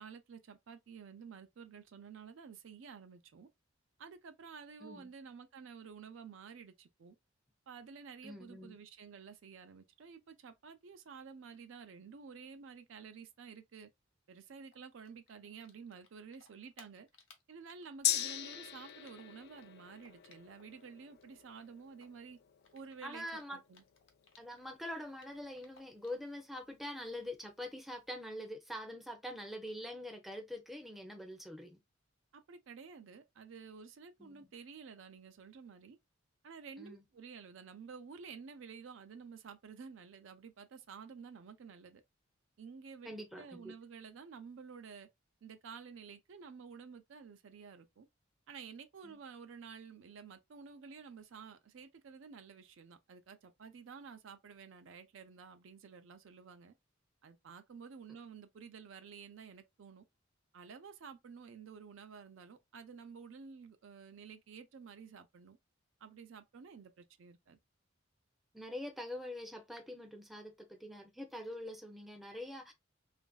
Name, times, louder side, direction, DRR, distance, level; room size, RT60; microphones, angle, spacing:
voice 1, 0.0-3.5 4.0-7.2 7.7-13.9 14.3-17.1 17.5-22.4 22.7-23.8 32.3-36.0 36.4-42.0 42.6-43.1 43.4-45.1 45.4-48.1 48.5-56.7 57.2-60.0 60.5-65.6 66.0-67.6, right 6 dB, 70° right, 0.4 m, -51 dB
voice 2, 4.8-5.1 8.2-8.8 23.0-23.6 24.4-31.8 34.2-34.5 36.8-37.0 43.1-43.7 49.0-49.1 68.5-72.7, left 1 dB, ahead, 0.5 m, -44 dB
Typing, 14.6-16.1 16.3-20.8 21.1-24.6 24.9-26.2, left 5 dB, 70° left, 0.7 m, -63 dB
Gong, 18.0-25.8 26.1-26.2, left 12 dB, 55° left, 0.4 m, -41 dB
3.0 x 2.5 x 2.3 m
head